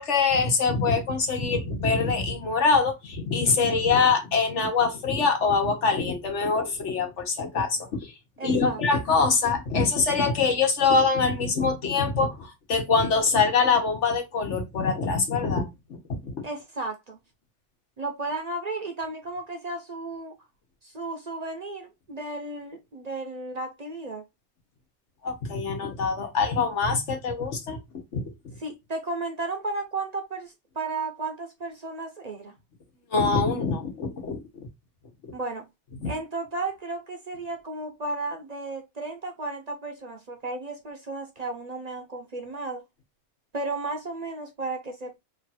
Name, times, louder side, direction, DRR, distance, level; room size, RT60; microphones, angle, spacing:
voice 1, 0.0-16.0 16.2-16.4 25.2-27.8 28.1-28.6 33.1-34.7 35.2-35.3 36.0-36.1, left 4 dB, 80° left, 1.4 m, -24 dB
voice 2, 8.4-8.8 16.4-17.2 18.0-20.4 20.8-24.2 28.6-32.5 35.3-35.7 36.1-42.8 43.5-45.2, right 3 dB, 45° right, 0.7 m, -34 dB
3.2 x 2.5 x 4.1 m
omnidirectional pair, 1.2 m